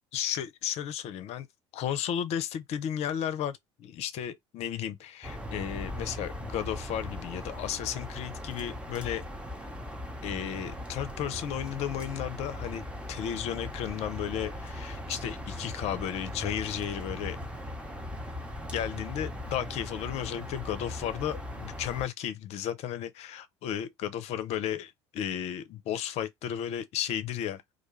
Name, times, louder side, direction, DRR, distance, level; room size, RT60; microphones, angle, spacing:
voice 1, 0.1-1.5 1.7-9.2 10.2-17.4 18.7-27.6, left 10 dB, 45° left, 0.5 m, -34 dB
sound 1, 5.2-22.1, left 1 dB, 10° right, 0.8 m, -39 dB
2.4 x 2.3 x 3.0 m
hypercardioid pair, 70°, 15 cm